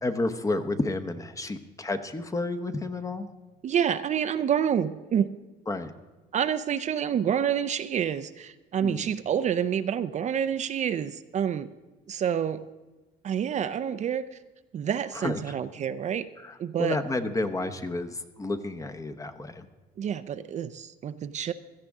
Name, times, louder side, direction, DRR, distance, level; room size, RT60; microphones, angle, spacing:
voice 1, 0.0-3.3 5.7-5.9 8.8-9.1 15.1-15.6 16.4-19.7, left 2 dB, 20° left, 8 dB, 0.9 m, -31 dB
voice 2, 3.6-5.3 6.3-11.7 12.1-12.6 13.2-14.4 14.7-16.3 16.6-17.0 20.0-21.5, right 8 dB, 45° right, 11 dB, 0.5 m, -28 dB
16.5 x 13.5 x 3.6 m, 1.2 s
cardioid pair, 110°, 17 cm